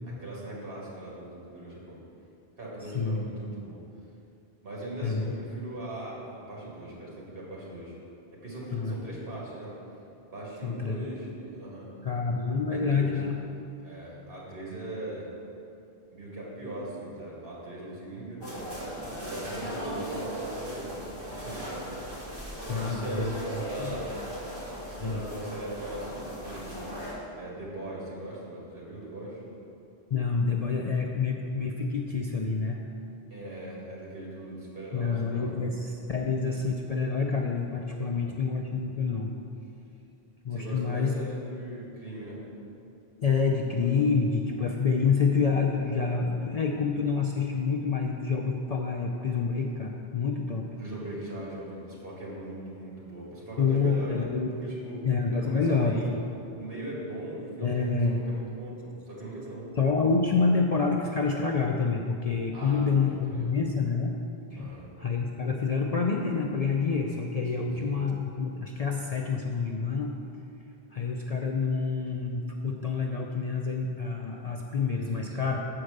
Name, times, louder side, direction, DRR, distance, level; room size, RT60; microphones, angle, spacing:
voice 1, 0.0-2.0 2.6-3.8 4.6-8.0 8.4-9.7 10.3-11.9 12.7-13.2 13.8-15.3 16.1-18.7 19.2-21.0 21.3-22.1 22.7-24.1 24.9-26.8 27.3-29.4 33.3-35.5 38.0-38.3 40.5-42.5 50.8-54.3 54.6-55.0 55.3-56.1 56.5-59.7 62.5-63.5 64.6-64.9 67.5-67.9 75.0-75.6, right 1 dB, 60° right, -5 dB, 2.3 m, -40 dB
voice 2, 10.6-11.0 12.0-13.4 22.7-23.9 25.0-25.2 30.1-32.8 34.9-39.3 40.4-41.1 43.2-50.7 53.6-54.5 55.0-56.0 57.6-58.2 59.8-64.2 64.5-70.1 70.9-75.6, left 5 dB, 50° left, 0 dB, 0.5 m, -27 dB
sound 1, 18.4-27.1, equal, 25° right, 1.9 m, -37 dB
7.5 x 4.8 x 6.5 m, 2.7 s
omnidirectional pair, 1.1 m